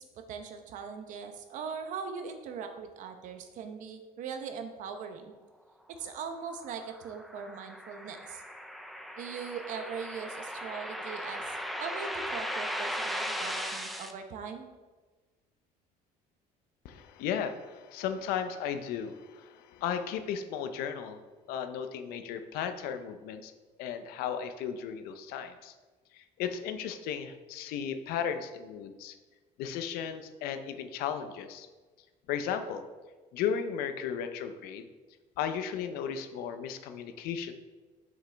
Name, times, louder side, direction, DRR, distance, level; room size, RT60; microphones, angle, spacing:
voice 1, 0.0-5.3 6.0-8.4 9.2-14.7, right 6 dB, 55° right, 6 dB, 0.8 m, -40 dB
sound 1, 6.3-14.1, equal, ahead, 0.4 m, -37 dB
voice 2, 16.8-21.2 21.5-23.5 23.8-25.7 26.1-29.2 29.6-31.7 32.3-32.9 33.3-34.9 35.4-37.5, left 8 dB, 80° left, 9 dB, 0.6 m, -35 dB
7.4 x 6.1 x 3.4 m, 1.3 s
cardioid pair, 160°, 15 cm